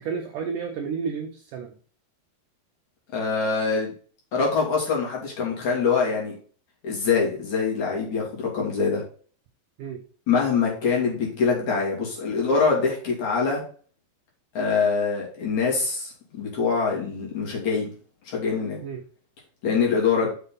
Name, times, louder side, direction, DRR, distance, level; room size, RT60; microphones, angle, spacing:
voice 1, 0.0-1.8 9.8-10.0 18.8-19.0 20.2-20.3, right 6 dB, 85° right, 2 dB, 1.8 m, -31 dB
voice 2, 3.1-3.9 4.3-6.3 6.8-9.0 10.3-13.6 14.6-17.9 18.3-18.8 19.6-20.3, left 5 dB, 45° left, -3 dB, 3.8 m, -24 dB
7.1 x 6.4 x 4.0 m, 0.43 s
omnidirectional pair, 5.0 m